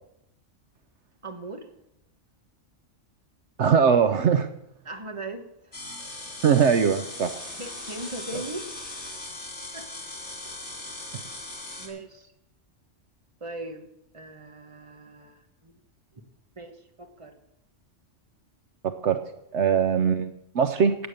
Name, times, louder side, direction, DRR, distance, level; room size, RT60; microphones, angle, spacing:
voice 1, 1.2-1.7 4.8-5.8 7.6-8.7 9.7-9.9 10.9-11.1 11.8-12.3 13.4-13.9 14.1-15.7 16.6-17.4, right 2 dB, 25° right, 5 dB, 1.5 m, -39 dB
voice 2, 3.6-4.5 6.4-7.3 18.8-19.2 19.5-21.0, right 7 dB, 70° right, 9 dB, 1.0 m, -21 dB
sound 1, 5.7-11.9, left 2 dB, 65° left, 3.2 m, -39 dB
16.5 x 8.9 x 6.6 m, 0.79 s
omnidirectional pair, 1.3 m